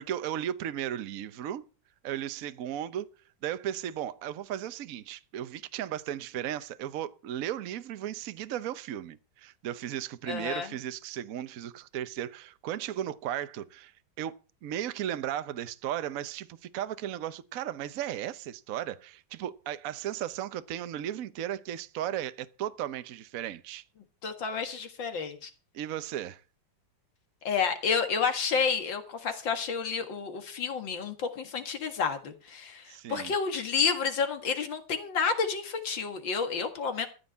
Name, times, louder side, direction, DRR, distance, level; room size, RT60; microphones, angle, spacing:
voice 1, 0.0-1.7 2.0-3.1 3.4-13.9 14.2-14.4 14.6-23.8 25.7-26.4 32.9-33.3, right 11 dB, 60° right, 1.1 m, -35 dB
voice 2, 10.3-10.7 24.2-25.5 27.4-37.1, left 5 dB, 85° left, 2.5 m, -30 dB
14.5 x 5.8 x 8.4 m
omnidirectional pair, 2.0 m